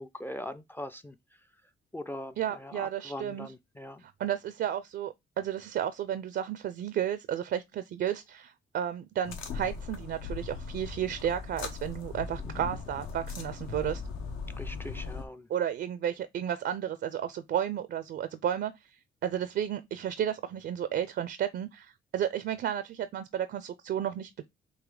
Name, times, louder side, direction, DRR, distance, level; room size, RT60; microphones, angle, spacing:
voice 1, 0.0-1.5 1.9-4.0 14.6-15.5, left 1 dB, 10° left, 0.3 m, -41 dB
voice 2, 2.4-3.5 4.2-14.0 15.5-18.7 19.2-24.5, right 10 dB, 60° right, 0.4 m, -32 dB
sound 1, 9.2-15.2, left 5 dB, 80° left, 1.0 m, -39 dB
4.0 x 2.7 x 4.7 m
cardioid pair, 90°, 20 cm